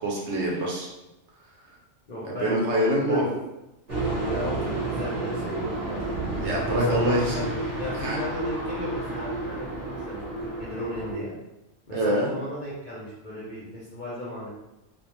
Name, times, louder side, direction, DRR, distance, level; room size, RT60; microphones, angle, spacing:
voice 1, 0.0-0.9 2.2-3.2 6.4-7.5 8.0-8.2 11.9-12.3, right 1 dB, 65° right, -3 dB, 0.8 m, -25 dB
voice 2, 2.1-2.6 3.0-3.3 4.3-6.0 6.7-7.5 7.8-11.3 11.9-14.5, left 1 dB, 50° left, -8 dB, 0.6 m, -35 dB
sound 1, 3.9-11.1, right 2 dB, 35° right, 0.8 m, -30 dB
2.3 x 2.1 x 2.9 m, 0.94 s
omnidirectional pair, 1.4 m